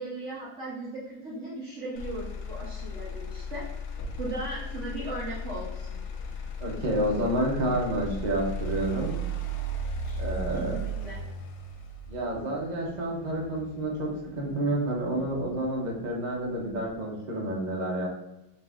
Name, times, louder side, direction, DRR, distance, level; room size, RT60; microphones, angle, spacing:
voice 1, 0.0-3.7 4.2-6.0 10.0-11.2, right 2 dB, 60° right, -6 dB, 0.7 m, -38 dB
Motor vehicle (road), 2.0-16.0 16.4-16.9, equal, 80° left, 1.3 m, -36 dB
voice 2, 6.6-9.2 10.2-10.8 12.1-14.1 14.4-18.1, right 1 dB, 90° right, -2 dB, 0.4 m, -29 dB
4.0 x 2.5 x 3.4 m, 0.94 s
omnidirectional pair, 2.1 m